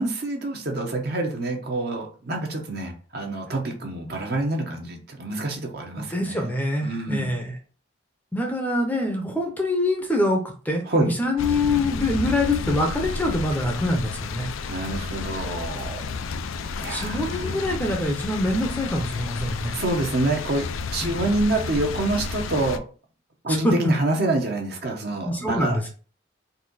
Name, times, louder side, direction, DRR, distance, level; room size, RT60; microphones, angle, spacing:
voice 1, 0.0-6.5 6.8-7.3 10.8-11.1 14.7-16.0 16.6-17.5 19.7-22.8 23.4-25.9, right 2 dB, 50° right, 2 dB, 0.9 m, -27 dB
voice 2, 6.0-7.5 8.3-14.5 16.9-19.7 21.0-21.1 23.5-23.8 25.2-25.9, left 1 dB, 10° left, 2 dB, 0.6 m, -25 dB
sound 1, 11.4-22.8, left 4 dB, 85° left, 0.4 m, -31 dB
4.2 x 2.6 x 4.0 m, 0.38 s
head